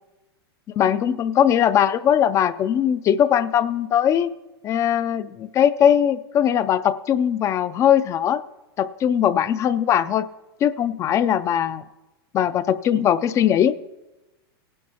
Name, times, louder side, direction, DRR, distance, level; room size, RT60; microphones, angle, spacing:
voice 1, 0.7-4.3 4.6-8.4 8.8-10.3 10.6-11.8 12.3-13.7, left 9 dB, 20° left, 14 dB, 0.4 m, -20 dB
18.5 x 11.0 x 2.8 m, 1.1 s
hypercardioid pair, 135°, 13 cm